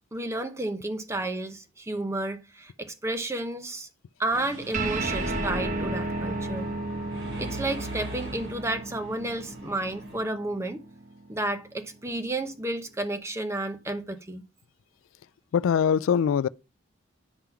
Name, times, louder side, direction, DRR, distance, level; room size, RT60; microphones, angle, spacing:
voice 1, 0.1-3.9 4.2-6.7 7.4-10.8 11.3-14.4, right 2 dB, 15° right, 0.8 m, -31 dB
Mechanisms, 4.3-10.2, right 1 dB, 85° right, 5.7 m, -42 dB
sound 1, 4.7-11.5, right 2 dB, 40° right, 1.0 m, -33 dB
voice 2, 15.5-16.5, left 7 dB, 90° left, 0.3 m, -22 dB
9.7 x 3.7 x 5.7 m
head